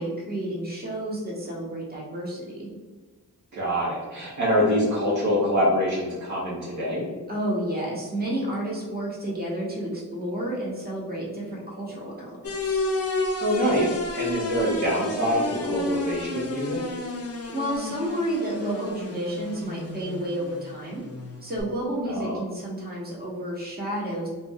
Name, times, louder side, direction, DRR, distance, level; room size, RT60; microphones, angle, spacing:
voice 1, 0.0-2.7 7.3-12.8 17.5-21.0 21.4-24.3, right 1 dB, 25° right, -3 dB, 1.1 m, -31 dB
voice 2, 3.5-7.1 13.4-16.8 22.1-22.4, equal, 50° right, -5 dB, 0.8 m, -25 dB
sound 1, 12.4-21.6, left 2 dB, 40° left, 0.5 m, -31 dB
2.4 x 2.2 x 3.5 m, 1.3 s
cardioid pair, 45°, 37 cm